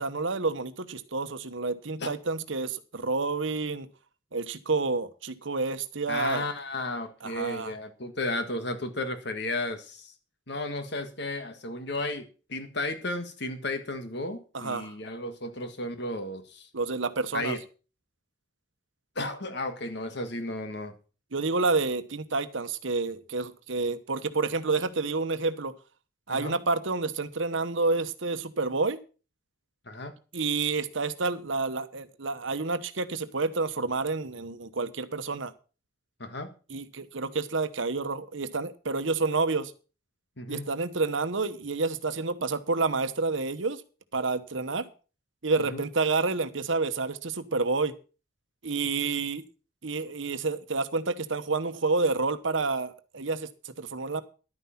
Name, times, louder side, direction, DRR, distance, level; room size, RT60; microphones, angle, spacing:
voice 1, 0.0-3.9 4.3-6.5 7.2-7.7 14.5-14.9 16.7-17.6 21.3-25.7 26.3-29.0 30.3-35.5 36.7-39.7 40.5-43.8 44.1-44.9 45.4-47.9 48.6-49.4 49.8-54.2, right 3 dB, 70° right, 1.1 m, -29 dB
voice 2, 6.1-10.1 10.5-16.7 17.3-17.6 19.1-20.9 26.3-26.6 29.9-30.2 36.2-36.5 40.4-40.7 45.7-45.8, left 2 dB, 55° left, 1.7 m, -34 dB
11.0 x 9.5 x 5.9 m
head